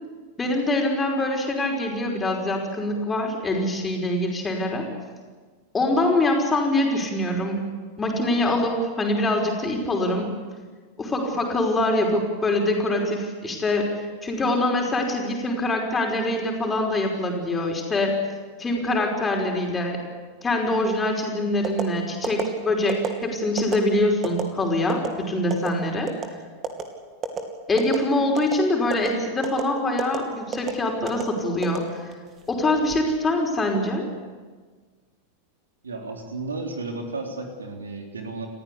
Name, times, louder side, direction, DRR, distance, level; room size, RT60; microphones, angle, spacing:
voice 1, 0.4-4.9 5.7-7.7 8.0-10.3 11.0-13.9 14.2-18.1 18.6-20.0 20.4-26.1 27.7-32.1 32.5-34.0, left 1 dB, 15° left, 1 dB, 5.2 m, -24 dB
sound 1, 21.6-21.9 22.2-22.4 22.9-23.1 23.6-23.8 24.2-24.4 24.9-25.1 25.5-25.7 26.1-26.3 26.6-26.8 27.2-27.4 27.8-28.0 28.4-28.6 28.9-29.1 29.4-29.6 30.0-30.2 30.5-30.7 31.1-31.2 31.6-32.3 32.7-33.0, right 6 dB, 25° right, 2.8 m, -28 dB
voice 2, 35.8-38.5, right 3 dB, 75° right, 2 dB, 3.6 m, -33 dB
29.5 x 15.0 x 8.5 m, 1.5 s
figure-of-eight pair, 90°, 0 cm